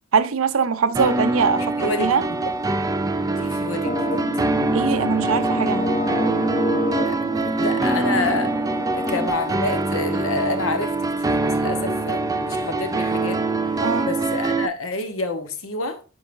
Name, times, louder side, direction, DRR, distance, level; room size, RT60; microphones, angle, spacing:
voice 1, 0.1-2.2 4.7-6.1 13.8-14.1, right 6 dB, 75° right, 0.6 m, -22 dB
sound 1, 0.9-14.7, right 3 dB, 15° right, 0.4 m, -24 dB
voice 2, 1.6-2.5 3.3-4.1 7.1-8.6 8.9-10.9 11.2-13.4 14.0-16.0, left 2 dB, 70° left, 1.1 m, -28 dB
sound 2, 3.8-9.3, left 1 dB, 35° left, 1.0 m, -27 dB
9.9 x 4.8 x 2.6 m
head